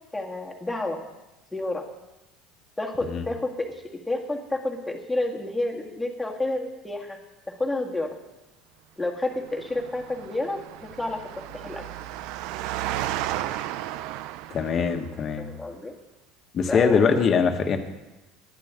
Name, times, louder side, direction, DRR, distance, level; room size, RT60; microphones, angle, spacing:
voice 1, 0.1-1.0 1.5-1.9 2.8-7.2 7.6-8.2 9.0-11.9 15.4-15.9 16.7-17.2, left 2 dB, 5° left, 0 dB, 2.0 m, -30 dB
Engine, 9.4-15.1, right 13 dB, 70° right, 0.5 m, -33 dB
voice 2, 14.5-15.5 16.5-17.8, left 6 dB, 35° left, 5 dB, 1.6 m, -22 dB
19.5 x 11.5 x 3.8 m, 1.0 s
cardioid pair, 135°, 0 cm